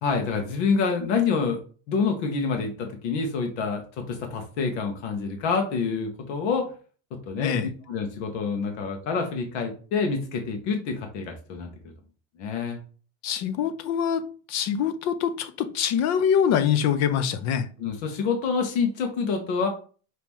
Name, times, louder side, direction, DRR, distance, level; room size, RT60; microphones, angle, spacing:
voice 1, 0.0-1.6 1.9-6.7 7.1-11.7 12.4-12.8 17.8-19.7, left 5 dB, 85° left, 1.2 m, -27 dB
voice 2, 7.4-7.7 13.2-14.2 14.5-17.7, left 8 dB, 50° left, 0.7 m, -24 dB
5.4 x 3.0 x 3.0 m
cardioid pair, 140°, 34 cm